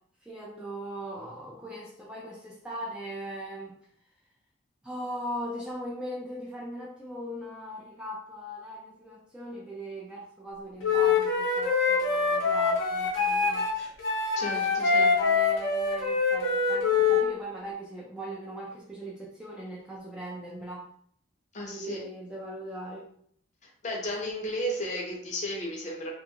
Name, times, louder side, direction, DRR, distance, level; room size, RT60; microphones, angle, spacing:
voice 1, 0.2-3.8 4.8-13.7 14.6-20.9 21.6-23.1, right 1 dB, 5° right, -4 dB, 0.3 m, -39 dB
Wind instrument woodwind instrument, 10.8-17.3, left 5 dB, 80° left, 0.7 m, -25 dB
voice 2, 14.4-15.1 21.5-22.0 23.8-26.1, equal, 35° left, 0 dB, 0.6 m, -33 dB
2.4 x 2.3 x 2.8 m, 0.65 s
head